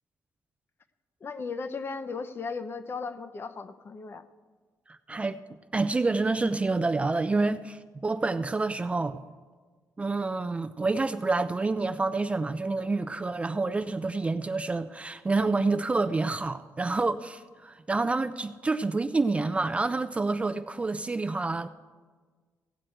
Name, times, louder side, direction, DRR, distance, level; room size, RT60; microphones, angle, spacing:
voice 1, 1.2-4.2, left 4 dB, 40° left, 0.6 m, -36 dB
voice 2, 4.9-5.4 5.7-9.2 10.0-21.7, right 3 dB, 20° right, 0.3 m, -28 dB
16.5 x 7.7 x 4.5 m
cardioid pair, 130°, 6 cm